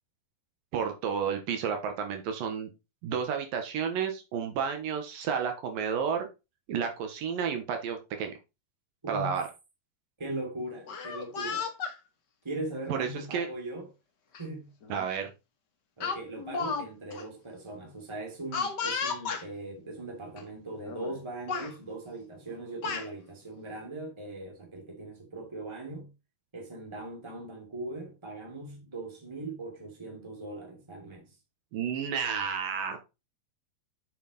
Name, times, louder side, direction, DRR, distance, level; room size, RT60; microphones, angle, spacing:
voice 1, 0.7-2.7 3.0-6.3 6.7-8.3 9.1-9.4 12.9-13.5 14.9-15.3 31.7-33.0, right 7 dB, 75° right, 2.9 m, -31 dB
voice 2, 9.0-9.4 10.2-11.7 12.4-13.9 14.4-14.7 16.0-26.1 26.5-31.3, right 2 dB, 10° right, 2.2 m, -40 dB
Speech, 10.8-12.0 12.9-13.1 14.3-14.4 14.8-15.0 16.0-16.9 17.1-17.2 18.5-19.4 20.4-20.5 20.8-21.2 21.5-21.7 22.5-23.1, left 5 dB, 65° left, 1.0 m, -33 dB
6.9 x 6.6 x 4.1 m
omnidirectional pair, 4.2 m